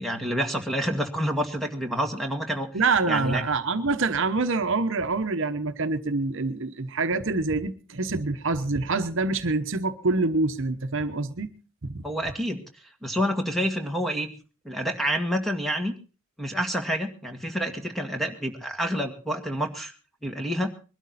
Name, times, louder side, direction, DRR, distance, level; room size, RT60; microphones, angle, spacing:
voice 1, 0.0-2.7 3.1-3.4 12.0-12.6 13.0-14.3 14.6-15.9 16.4-19.9 20.2-20.7, equal, ahead, 4 dB, 1.9 m, -28 dB
voice 2, 2.7-11.5 11.8-12.0, right 3 dB, 55° right, 9 dB, 1.0 m, -26 dB
22.0 x 12.5 x 4.1 m, 0.34 s
head